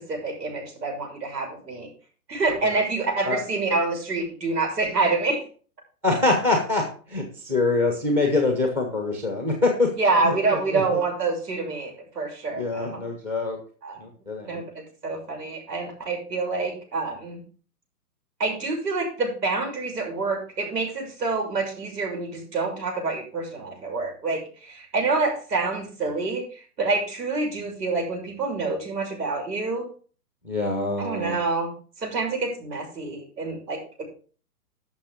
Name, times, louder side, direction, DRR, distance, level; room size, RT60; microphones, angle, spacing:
voice 1, 0.1-1.9 2.3-5.4 9.9-13.0 13.8-14.0 14.4-17.4 18.4-29.9 31.0-31.7 32.0-34.0, right 3 dB, 90° right, 2 dB, 6.5 m, -27 dB
voice 2, 6.0-9.9 10.2-11.0 12.5-13.6 14.0-14.6 30.4-31.4, left 3 dB, 5° right, 2 dB, 0.8 m, -25 dB
12.0 x 6.6 x 5.0 m, 0.40 s
hypercardioid pair, 165°, 47 cm